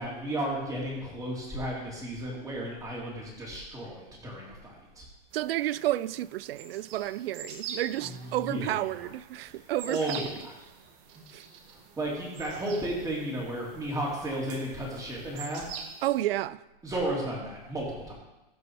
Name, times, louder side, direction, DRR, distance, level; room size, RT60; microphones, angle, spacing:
voice 1, 0.0-5.0 8.0-9.1 9.5-10.5 11.1-11.2 12.0-15.7 16.8-18.1, right 1 dB, 10° right, 3.0 m, -34 dB
sound 1, 5.3-16.2, right 6 dB, 45° right, 1.5 m, -46 dB
voice 2, 5.3-10.2 11.3-11.4 16.0-16.6, right 14 dB, 75° right, 0.5 m, -31 dB
15.0 x 5.5 x 4.6 m
supercardioid pair, 140°, 29 cm